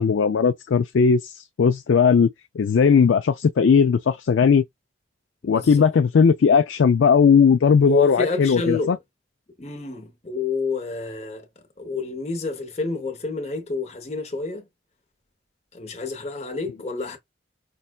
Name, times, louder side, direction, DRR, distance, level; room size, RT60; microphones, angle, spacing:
voice 1, 0.0-2.3 2.6-4.6 5.4-9.0, left 6 dB, 70° left, 0.4 m, -18 dB
voice 2, 5.4-5.9 7.9-9.0 9.6-14.7 15.7-17.2, left 3 dB, 35° left, 0.8 m, -29 dB
5.3 x 2.2 x 2.3 m
head